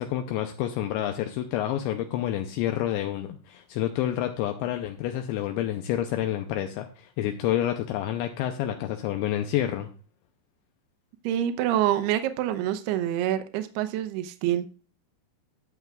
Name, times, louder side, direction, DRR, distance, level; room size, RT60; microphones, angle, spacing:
voice 1, 0.0-9.9, left 12 dB, 80° left, 6 dB, 2.9 m, -29 dB
voice 2, 11.2-14.7, right 12 dB, 80° right, 9 dB, 2.4 m, -26 dB
20.0 x 7.0 x 2.4 m, 0.36 s
omnidirectional pair, 5.5 m